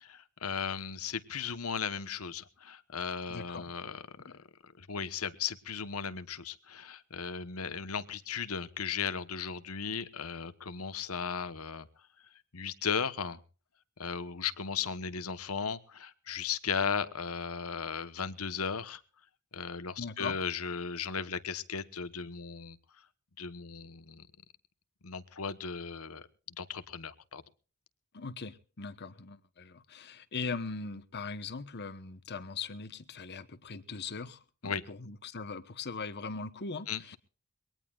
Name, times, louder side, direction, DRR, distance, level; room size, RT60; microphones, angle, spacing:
voice 1, 0.0-11.9 12.5-13.4 14.0-19.0 19.5-22.8 23.4-24.2 25.0-26.3 26.6-27.4 34.6-34.8 36.9-37.2, left 6 dB, 80° left, 1.2 m, -36 dB
voice 2, 3.3-3.7 4.3-4.4 20.0-20.4 28.1-37.2, left 4 dB, 50° left, 1.2 m, -40 dB
23.0 x 18.5 x 2.4 m
head